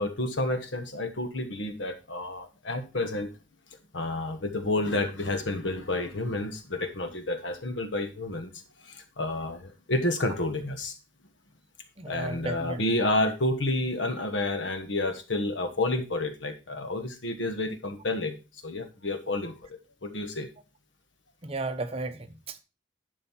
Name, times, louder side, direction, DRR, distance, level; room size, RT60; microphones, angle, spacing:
voice 1, 0.0-3.3 3.9-8.5 8.8-10.9 12.0-18.4 18.6-19.5 20.0-20.5, left 2 dB, 80° left, 1.3 m, -30 dB
voice 2, 12.0-12.8 21.4-22.6, right 2 dB, 30° right, 0.8 m, -34 dB
11.0 x 5.4 x 4.3 m
head